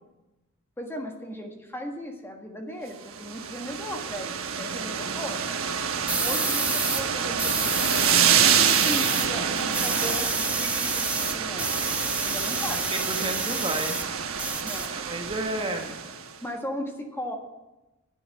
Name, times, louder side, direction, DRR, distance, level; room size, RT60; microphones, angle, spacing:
voice 1, 0.8-5.4 6.2-7.9 8.3-11.8 12.2-12.9 14.6-15.0 16.4-17.4, equal, 10° left, 2 dB, 1.6 m, -37 dB
sound 1, 3.1-16.3, right 7 dB, 70° right, 1.1 m, -27 dB
sound 2, 6.1-7.0 7.4-9.3 9.5-14.1 14.4-15.4, right 2 dB, 5° right, 1.0 m, -29 dB
voice 2, 12.9-14.0 14.9-15.9, right 2 dB, 25° right, 3 dB, 1.2 m, -31 dB
11.5 x 9.2 x 8.0 m, 1.0 s
head